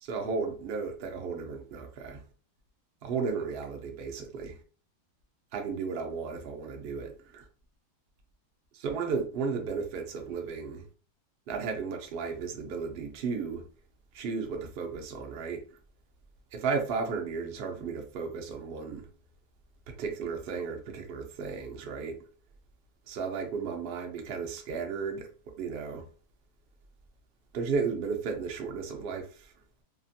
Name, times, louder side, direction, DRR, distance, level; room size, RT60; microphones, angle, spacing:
voice 1, 0.0-2.2 3.0-4.6 5.5-7.5 8.8-10.9 11.5-13.6 14.1-15.6 16.5-19.1 19.9-22.2 23.1-26.1 27.5-29.5, right 5 dB, 85° right, 0.5 m, -34 dB
2.9 x 2.4 x 2.6 m
omnidirectional pair, 1.7 m